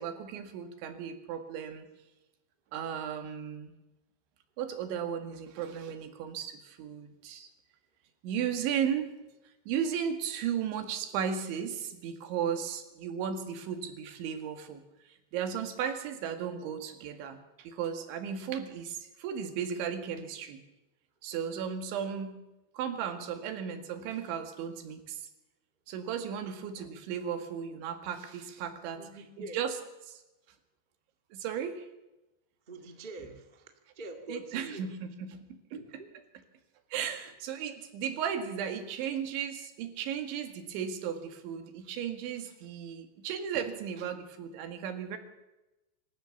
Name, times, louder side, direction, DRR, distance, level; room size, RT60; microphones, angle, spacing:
voice 1, 0.0-1.9 2.7-3.7 4.6-7.5 8.2-9.1 9.7-20.6 21.2-22.4 22.7-25.3 25.9-29.0 29.4-29.7 30.1-30.2 31.3-31.9 34.3-35.5 36.9-45.2, right 8 dB, 90° right, 7 dB, 4.4 m, -35 dB
voice 2, 28.9-29.7 32.7-34.9 35.7-36.1, right 2 dB, 70° right, 5 dB, 0.4 m, -45 dB
26.0 x 14.0 x 7.2 m, 1.0 s
omnidirectional pair, 5.2 m